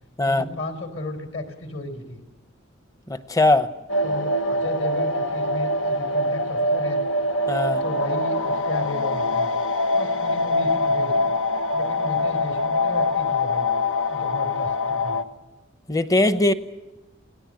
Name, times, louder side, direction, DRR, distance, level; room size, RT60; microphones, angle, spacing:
voice 1, 0.2-2.2 4.0-7.0 7.8-9.5 9.9-11.3 11.7-13.7 14.1-15.2, left 2 dB, 65° left, 4.4 m, -34 dB
voice 2, 3.1-3.7 7.5-7.8 15.9-16.5, left 2 dB, 15° left, 0.9 m, -20 dB
sound 1, 3.9-15.2, left 2 dB, 80° left, 1.3 m, -24 dB
28.5 x 18.0 x 7.7 m
head